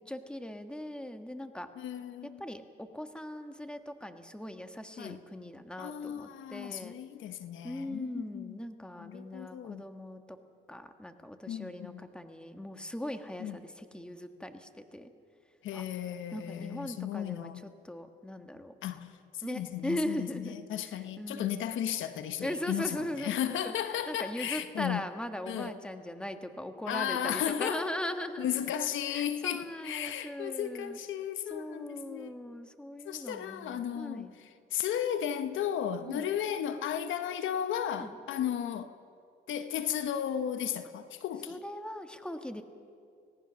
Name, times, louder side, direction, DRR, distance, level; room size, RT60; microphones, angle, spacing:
voice 1, 0.1-1.7 2.2-7.0 7.6-10.4 10.7-15.1 15.7-15.9 16.3-18.7 19.4-20.6 20.9-21.7 22.4-23.7 24.1-28.5 29.1-31.0 31.5-34.3 36.0-36.3 38.0-38.2 41.5-42.6, left 1 dB, 5° left, 1.6 m, -39 dB
voice 2, 1.8-2.4 5.0-5.2 5.8-8.6 9.0-9.8 11.5-12.0 13.4-13.6 15.6-17.6 18.8-25.0 25.5-25.8 26.9-27.9 28.4-32.3 33.0-38.9 39.5-41.6, left 10 dB, 80° left, 1.1 m, -35 dB
26.0 x 18.5 x 6.3 m
cardioid pair, 90°, 20 cm